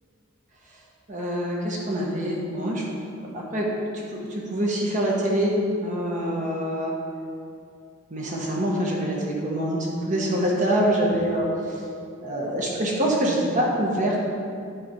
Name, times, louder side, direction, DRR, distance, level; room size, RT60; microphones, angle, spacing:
voice 1, 1.1-3.7 4.1-6.9 8.1-11.8 12.2-14.2, right 1 dB, 35° right, -3 dB, 1.1 m, -25 dB
8.8 x 4.1 x 5.6 m, 2.4 s
head